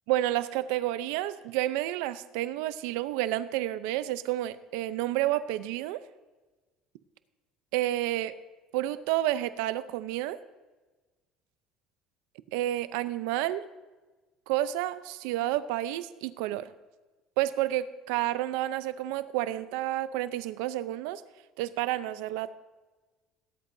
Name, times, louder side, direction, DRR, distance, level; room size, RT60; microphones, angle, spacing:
voice 1, 0.1-6.0 7.7-8.3 8.7-10.4 12.5-13.6 14.5-16.7 17.4-21.2 21.6-22.6, right 14 dB, 90° right, 14 dB, 0.6 m, -30 dB
18.0 x 11.0 x 2.7 m, 1.2 s
cardioid pair, 120°, 0 cm